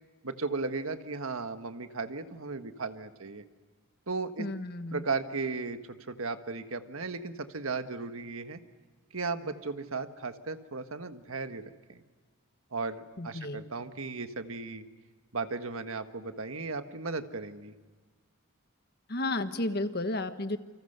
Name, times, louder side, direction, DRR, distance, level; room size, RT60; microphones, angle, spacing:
voice 1, 0.2-3.4 4.1-4.5 4.9-8.6 9.1-12.0 12.7-14.8 15.3-17.7, right 4 dB, 80° right, 9 dB, 1.5 m, -36 dB
voice 2, 4.4-5.0 13.2-13.7 19.1-20.6, left 2 dB, 45° left, 9 dB, 1.3 m, -32 dB
29.0 x 25.5 x 6.8 m, 1.4 s
head